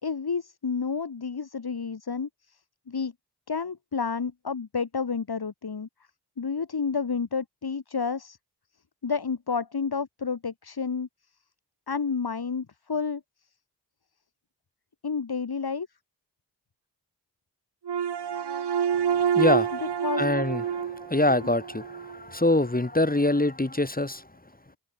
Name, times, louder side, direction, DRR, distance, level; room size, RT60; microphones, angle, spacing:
voice 1, 0.0-2.6 2.9-3.1 3.5-5.9 6.4-8.4 9.0-11.1 11.9-13.2 15.0-15.9 20.0-20.2, left 5 dB, 65° left, 4.6 m, -30 dB
sound 1, 17.9-22.2, right 8 dB, 75° right, 1.5 m, -27 dB
voice 2, 19.3-19.7 20.2-24.2, left 2 dB, 20° left, 3.0 m, -24 dB
cardioid pair, 40°, 41 cm